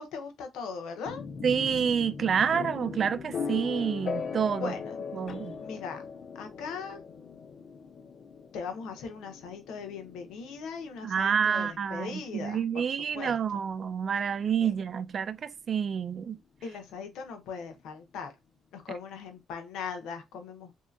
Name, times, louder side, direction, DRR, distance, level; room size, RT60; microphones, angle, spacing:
voice 1, 0.0-1.2 4.6-5.0 5.6-6.1 6.3-7.0 8.5-12.8 13.1-13.6 14.6-14.7 16.6-18.4 18.7-20.7, left 5 dB, 90° left, 0.7 m, -39 dB
sound 1, 1.1-14.8, left 5 dB, 55° left, 0.3 m, -40 dB
voice 2, 1.4-4.7 5.1-5.6 11.0-16.4, right 7 dB, 50° right, 0.3 m, -28 dB
3.1 x 2.7 x 2.4 m
cardioid pair, 90°, 0 cm